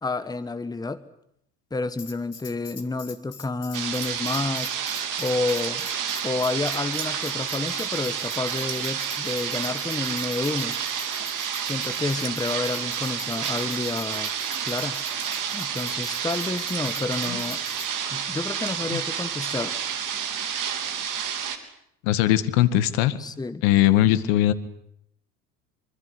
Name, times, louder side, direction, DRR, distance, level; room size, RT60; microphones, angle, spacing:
voice 1, 0.0-1.0 1.7-4.8 5.2-5.9 6.2-10.8 11.6-14.3 14.6-15.0 15.5-17.6 18.1-19.7 23.2-23.6, left 3 dB, 10° left, 13 dB, 1.5 m, -29 dB
Tambourine, 2.0-17.9, left 5 dB, 85° left, 2.5 m, -44 dB
washington artgallery fountain, 3.7-21.6, right 8 dB, 40° right, 3.7 m, -30 dB
sound 1, 4.0-4.4 4.7-5.7 6.4-7.3 8.1-8.9 9.2-9.4 9.9-10.4 10.9-11.8 12.2-12.8 13.7-15.3 16.6-17.2 18.4-18.7, right 8 dB, 65° right, 3.9 m, -43 dB
voice 2, 22.0-23.2 23.6-24.5, left 13 dB, 55° left, 14 dB, 2.0 m, -20 dB
25.5 x 25.5 x 8.1 m, 0.73 s
figure-of-eight pair, 70°, 46 cm